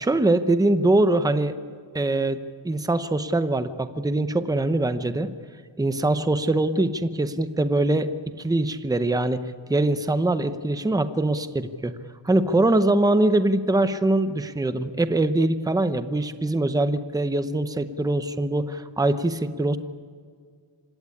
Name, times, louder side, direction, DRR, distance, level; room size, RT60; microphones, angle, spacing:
voice 1, 0.0-1.5 1.9-2.4 2.6-5.3 5.8-8.1 8.4-11.9 12.2-19.8, right 2 dB, 10° right, 11 dB, 0.8 m, -23 dB
26.0 x 17.0 x 10.0 m, 2.1 s
wide cardioid pair, 150°, 47 cm